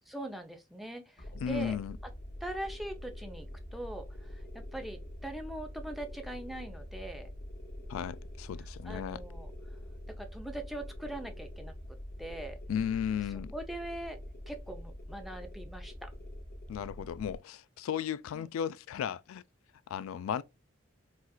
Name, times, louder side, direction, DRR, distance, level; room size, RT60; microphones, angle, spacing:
voice 1, 0.1-1.8 2.4-7.3 8.9-9.5 10.2-11.7 12.2-12.6 13.5-14.2 14.5-16.1 18.3-18.5, right 1 dB, ahead, 0.5 m, -41 dB
sound 1, 1.2-17.4, left 1 dB, 45° left, 1.1 m, -45 dB
voice 2, 1.3-2.0 7.9-9.2 12.7-13.5 16.7-19.4 19.9-20.4, left 8 dB, 85° left, 0.3 m, -35 dB
4.2 x 2.4 x 2.2 m
head